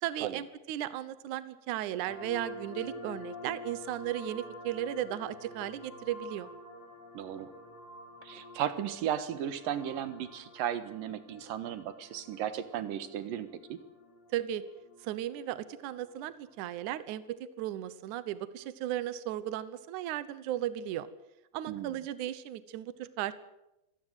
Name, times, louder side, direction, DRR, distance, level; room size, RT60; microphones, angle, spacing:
voice 1, 0.0-6.5 14.3-14.6 15.0-21.1 21.5-23.3, right 12 dB, 90° right, 15 dB, 1.7 m, -36 dB
sound 1, 2.0-16.6, left 2 dB, 10° left, 4.7 m, -49 dB
voice 2, 7.1-7.5 8.2-13.8 21.7-22.0, right 10 dB, 65° right, 12 dB, 2.6 m, -35 dB
25.0 x 17.5 x 7.9 m, 0.94 s
omnidirectional pair, 5.0 m